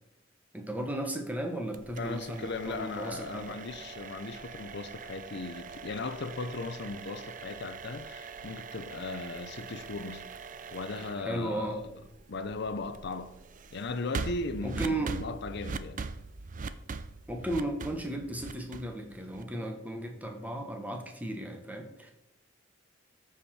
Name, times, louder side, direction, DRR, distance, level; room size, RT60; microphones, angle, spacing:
voice 1, 0.5-3.6 11.2-11.8 14.6-15.2 17.3-22.1, right 1 dB, 10° right, 1.2 m, -35 dB
sound 1, 1.7-19.7, right 4 dB, 45° right, 0.5 m, -42 dB
voice 2, 2.0-10.2 10.7-11.9 12.3-13.4 13.7-16.1, left 3 dB, 60° left, 0.6 m, -37 dB
13.5 x 4.9 x 4.3 m
head